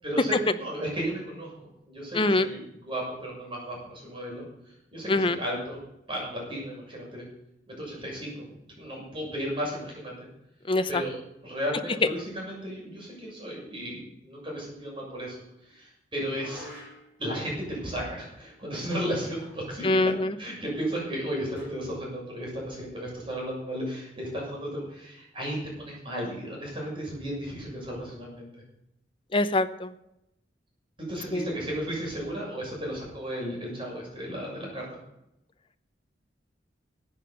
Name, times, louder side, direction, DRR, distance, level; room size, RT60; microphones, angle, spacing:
voice 1, 0.0-4.5 4.9-5.8 6.1-7.2 7.7-10.3 10.9-11.2 11.4-15.4 15.6-16.7 17.2-20.1 20.4-28.5 31.0-34.9, equal, 30° right, -3 dB, 6.9 m, -34 dB
voice 2, 2.1-2.5 5.1-5.4 10.7-11.0 19.8-20.3 29.3-29.9 31.3-31.5, left 2 dB, 30° left, 10 dB, 0.8 m, -24 dB
sound 1, 16.2-17.2 19.4-19.8 20.0-20.1 21.6-21.9, equal, 10° right, 6.1 m, -45 dB
14.0 x 8.9 x 6.9 m, 0.83 s
head